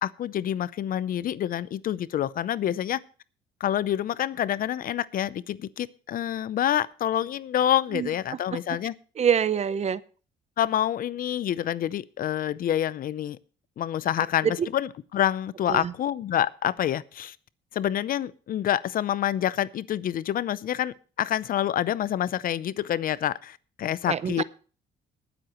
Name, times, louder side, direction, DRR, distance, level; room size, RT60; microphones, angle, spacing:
voice 1, 0.0-3.0 3.6-8.9 10.6-13.4 13.8-17.4 17.7-24.4, left 11 dB, 55° left, 18 dB, 0.6 m, -27 dB
voice 2, 9.2-10.0 14.4-14.7 15.7-15.9 24.1-24.4, right 8 dB, 40° right, 17 dB, 0.7 m, -25 dB
22.0 x 8.0 x 3.0 m, 0.38 s
cardioid pair, 95°, 17 cm